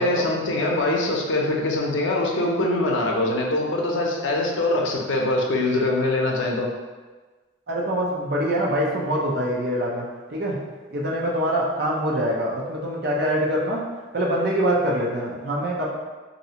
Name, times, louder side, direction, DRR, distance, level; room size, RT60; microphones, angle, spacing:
voice 1, 0.0-6.7, left 2 dB, 75° left, 0 dB, 0.5 m, -23 dB
voice 2, 7.7-10.6 10.9-13.8 14.1-15.9, equal, 55° right, -3 dB, 0.5 m, -24 dB
3.2 x 2.6 x 2.8 m, 1.3 s
head